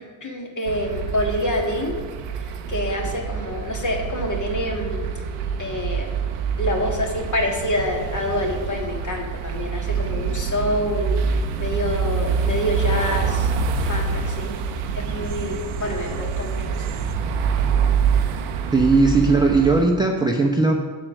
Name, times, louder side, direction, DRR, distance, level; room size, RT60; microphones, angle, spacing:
voice 1, 0.0-2.0 2.4-5.0 5.6-6.1 6.6-11.2 11.6-13.5 13.8-14.5 14.9-16.9, left 1 dB, 35° left, 1 dB, 1.7 m, -27 dB
sound 1, 0.7-19.8, right 6 dB, 90° right, 0.7 m, -26 dB
voice 2, 18.7-20.7, right 3 dB, 10° right, 1 dB, 0.7 m, -18 dB
7.5 x 4.4 x 6.3 m, 1.4 s
supercardioid pair, 60°, 49 cm